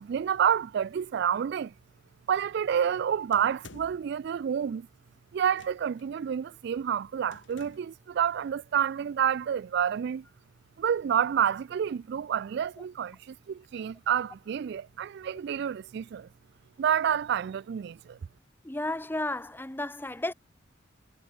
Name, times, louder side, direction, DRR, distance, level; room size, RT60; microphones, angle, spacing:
voice 1, 0.0-1.7 2.3-4.9 5.3-10.2 10.8-16.3 16.8-18.2, right 8 dB, 60° right, 0.3 m, -29 dB
sound 1, 3.3-4.1 5.5-6.0 7.3-8.0, left 3 dB, 65° left, 2.1 m, -51 dB
voice 2, 18.6-20.3, left 2 dB, 10° left, 0.9 m, -33 dB
head